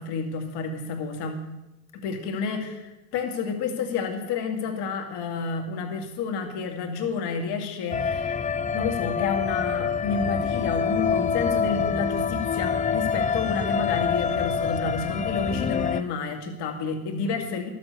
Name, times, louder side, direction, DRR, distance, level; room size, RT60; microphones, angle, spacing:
voice 1, 0.0-1.4 1.9-17.7, left 5 dB, 65° left, 4 dB, 2.3 m, -30 dB
sound 1, 7.9-16.0, left 6 dB, 20° left, 0.4 m, -26 dB
12.5 x 7.8 x 6.7 m, 1.0 s
hypercardioid pair, 75°, 44 cm